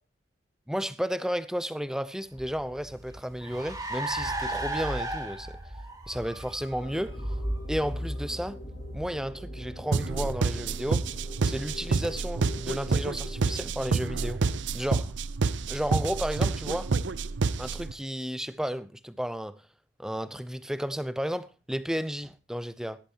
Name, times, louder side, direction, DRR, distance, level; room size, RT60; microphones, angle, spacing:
voice 1, 0.7-5.5 6.1-7.1 7.7-8.6 8.9-11.0 11.4-14.4 14.7-15.1 15.7-16.9 17.6-19.5 20.0-23.0, equal, 5° right, 0.6 m, -33 dB
Car, 2.3-10.1, right 1 dB, 20° right, 3.6 m, -35 dB
sound 1, 6.8-13.6, left 2 dB, 60° left, 3.5 m, -46 dB
sound 2, 9.9-17.9, right 4 dB, 90° right, 0.6 m, -28 dB
16.5 x 12.0 x 2.9 m
head